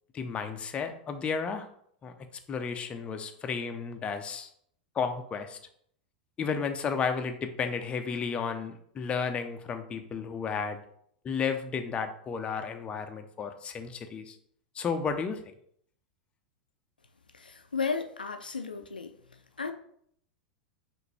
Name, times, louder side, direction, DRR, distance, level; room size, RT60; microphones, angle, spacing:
voice 1, 0.1-1.7 2.0-2.1 2.5-4.5 5.0-5.6 6.4-10.8 11.2-14.4 14.8-15.4, left 5 dB, 25° left, 7 dB, 0.5 m, -33 dB
voice 2, 17.3-19.1 19.6-19.7, left 5 dB, 85° left, 6 dB, 0.4 m, -34 dB
5.8 x 2.6 x 3.3 m, 0.66 s
figure-of-eight pair, 90°, 5 cm